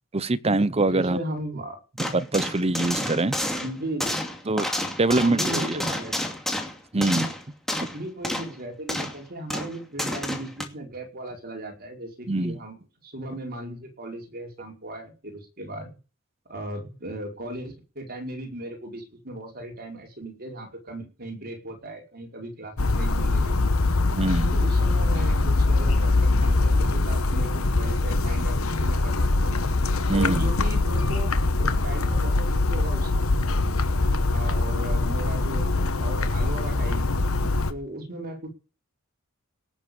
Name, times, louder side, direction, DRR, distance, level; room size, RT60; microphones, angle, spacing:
voice 1, 0.1-1.2 2.0-3.4 4.5-4.7 5.0-5.9 6.9-7.3 12.3-12.6 24.2-24.6 30.1-30.5 37.2-37.3, right 2 dB, 30° right, 0.9 m, -24 dB
voice 2, 0.9-1.8 3.5-4.2 5.0-6.2 7.9-15.9 16.5-23.5 24.5-29.1 29.4-29.6 30.1-33.1 34.2-37.1 37.6-38.5, right 1 dB, 45° right, 5.1 m, -36 dB
sound 1, 2.0-8.0 8.2-8.5 8.9-9.2 9.5-10.6, left 1 dB, ahead, 2.6 m, -30 dB
sound 2, 22.8-37.7, left 2 dB, 75° left, 1.3 m, -23 dB
18.5 x 7.5 x 7.3 m
head